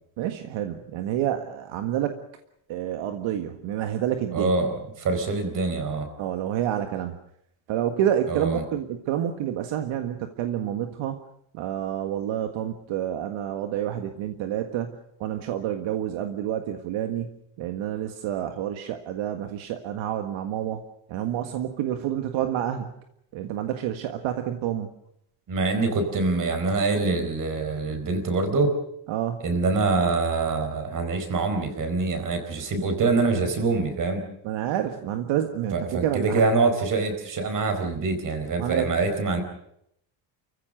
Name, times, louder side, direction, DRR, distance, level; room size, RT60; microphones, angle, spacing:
voice 1, 0.2-2.2 2.7-4.5 6.2-7.2 7.7-11.2 11.5-20.8 21.1-22.9 23.3-24.9 29.1-29.5 34.4-36.4 38.6-38.9, right 11 dB, 75° right, 6 dB, 1.7 m, -28 dB
voice 2, 4.3-6.1 8.3-8.6 25.5-28.8 29.4-34.2 35.7-39.4, right 3 dB, 40° right, 7 dB, 4.5 m, -25 dB
29.0 x 15.5 x 6.5 m, 0.74 s
cardioid pair, 145°, 48 cm